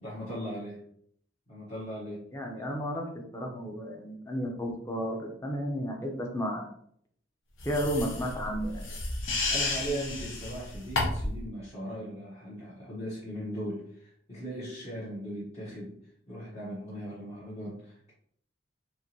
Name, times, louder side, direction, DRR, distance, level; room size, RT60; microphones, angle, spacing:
voice 1, 0.0-0.8 1.5-2.3 9.5-16.0 16.3-18.1, equal, 35° left, -9 dB, 1.3 m, -38 dB
voice 2, 2.3-3.0 3.3-6.7 7.6-8.8, equal, 15° left, 1 dB, 0.8 m, -32 dB
sound 1, 7.6-11.4, left 2 dB, 90° left, 1.0 m, -32 dB
4.8 x 3.1 x 2.9 m, 0.65 s
head